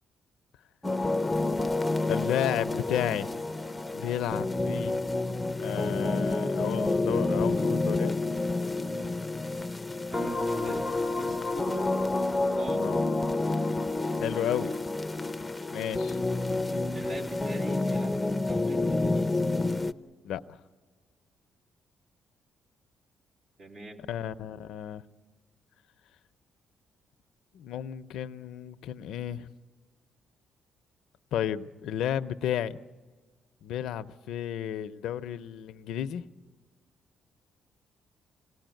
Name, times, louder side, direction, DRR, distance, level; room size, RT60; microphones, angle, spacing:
dnb liquid progression (consolidated), 0.8-19.9, left 2 dB, 15° left, 0.7 m, -29 dB
voice 1, 2.1-3.3 3.9-5.0 5.6-8.1 12.8-13.0 14.2-14.7 15.7-16.2 20.2-20.4 24.1-25.0 27.5-29.5 31.3-32.8 33.6-36.2, left 10 dB, 80° left, 10 dB, 0.7 m, -32 dB
voice 2, 10.1-10.8 11.1-11.9 12.6-12.8 16.9-19.4 23.6-24.0, right 3 dB, 60° right, 1 dB, 3.6 m, -41 dB
27.0 x 18.5 x 9.2 m, 1.4 s
cardioid pair, 90°, 0 cm